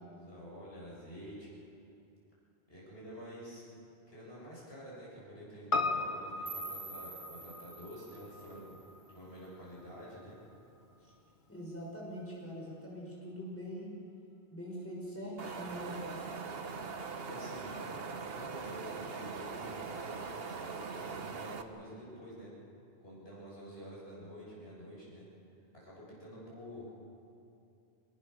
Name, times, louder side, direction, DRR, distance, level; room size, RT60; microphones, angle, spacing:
voice 1, 0.1-1.5 2.7-3.6 4.1-8.7 9.1-10.3 17.2-22.5 23.0-25.2 25.7-26.9, equal, 80° left, -6 dB, 7.6 m, -48 dB
Piano, 5.7-10.2 10.5-10.6, left 3 dB, 50° left, 1.3 m, -38 dB
sound 1, 6.5-9.5, right 3 dB, 20° right, 1.7 m, -47 dB
voice 2, 11.5-13.9 14.5-16.3, equal, 15° left, -4 dB, 6.1 m, -43 dB
Wind, 15.4-21.6, right 5 dB, 70° right, 1.4 m, -41 dB
26.0 x 22.0 x 6.8 m, 2.7 s
omnidirectional pair, 1.0 m